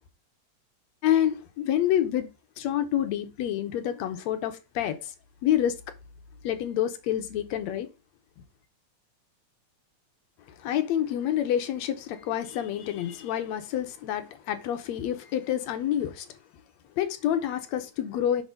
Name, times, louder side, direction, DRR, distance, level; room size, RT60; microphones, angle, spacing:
voice 1, 1.0-2.3 2.6-5.1 5.4-5.8 6.4-7.9 10.5-16.4 17.0-18.4, left 11 dB, 75° left, 1.9 m, -28 dB
6.2 x 3.8 x 5.1 m
omnidirectional pair, 3.3 m